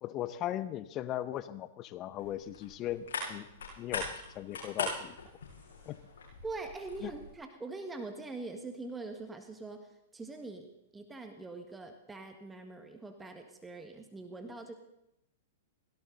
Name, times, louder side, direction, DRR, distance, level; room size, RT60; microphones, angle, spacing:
voice 1, 0.0-3.5 3.8-5.1 5.9-6.0 7.0-7.1, left 12 dB, 35° left, 15 dB, 0.8 m, -38 dB
sound 1, 2.2-7.3, left 4 dB, 70° left, 6.5 m, -41 dB
voice 2, 6.4-14.8, right 3 dB, 10° right, 5 dB, 1.6 m, -43 dB
17.5 x 17.0 x 4.0 m, 0.83 s
hypercardioid pair, 115°, 0 cm